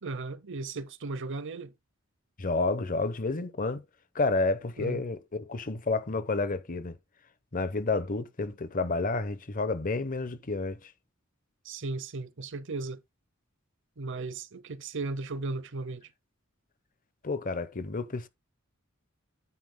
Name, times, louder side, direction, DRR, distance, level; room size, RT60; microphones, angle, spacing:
voice 1, 0.0-1.7 4.8-5.0 11.6-13.0 14.0-16.1, right 3 dB, 65° right, 0.8 m, -36 dB
voice 2, 2.4-3.8 4.1-7.0 7.5-10.9 17.2-18.3, left 3 dB, 40° left, 0.9 m, -30 dB
9.7 x 9.1 x 2.2 m
head